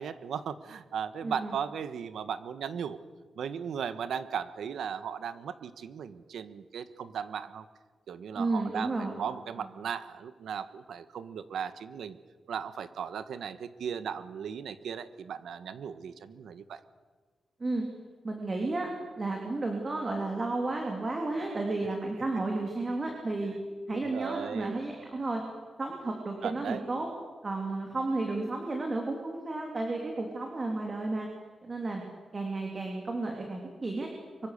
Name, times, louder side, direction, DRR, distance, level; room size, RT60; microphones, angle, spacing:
voice 1, 0.0-3.0 3.3-7.6 8.1-12.2 12.5-16.8 23.9-24.8 26.4-26.8, right 7 dB, 80° right, 12 dB, 1.3 m, -37 dB
voice 2, 1.2-1.5 8.3-9.2 9.6-9.7 17.6-17.8 18.2-18.9 19.2-23.5 23.9-25.4 25.8-27.1 27.4-31.3 31.6-32.0 32.3-34.1, right 2 dB, 30° right, 1 dB, 3.2 m, -32 dB
24.5 x 24.0 x 6.7 m, 1.4 s
wide cardioid pair, 150°, 0 cm